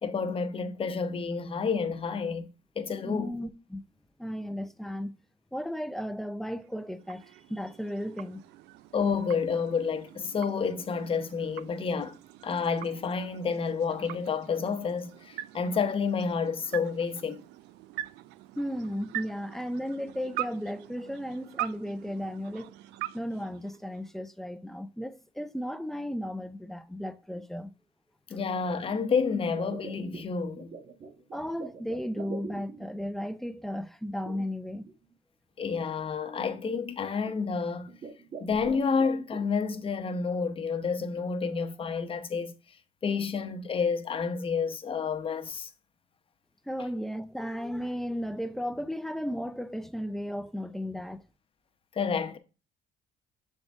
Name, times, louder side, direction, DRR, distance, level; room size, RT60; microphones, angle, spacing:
voice 1, 0.0-2.5 2.8-3.3 8.9-12.2 12.4-17.4 28.3-30.7 35.6-37.9 38.4-42.5 43.0-45.7 51.9-52.4, left 5 dB, 30° left, 0.8 m, -29 dB
voice 2, 3.0-3.8 4.2-5.1 5.5-8.4 18.6-22.7 23.1-27.7 31.3-34.9 46.7-51.2, equal, ahead, 0.5 m, -35 dB
sound 1, 6.5-24.3, right 15 dB, 90° right, 0.4 m, -43 dB
sound 2, 29.6-33.1 34.2-34.9 35.6-35.7 36.3-36.6 37.2-37.5 37.9-39.4, right 4 dB, 45° right, 1.4 m, -44 dB
7.1 x 4.0 x 3.4 m
cardioid pair, 110°, 17 cm